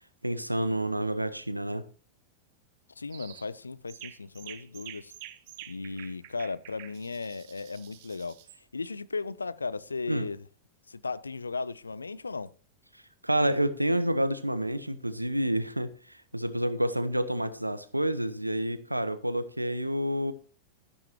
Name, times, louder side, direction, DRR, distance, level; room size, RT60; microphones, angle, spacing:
voice 1, 0.2-1.9 10.1-10.3 13.2-20.3, right 1 dB, 85° right, 0.7 m, -29 dB
voice 2, 3.0-5.1 5.7-10.5 10.9-12.5, left 4 dB, 80° left, 0.4 m, -36 dB
sound 1, 3.1-3.5 3.9-8.6, right 13 dB, 50° right, 0.9 m, -48 dB
12.5 x 10.5 x 2.9 m
figure-of-eight pair, 90°, 0 cm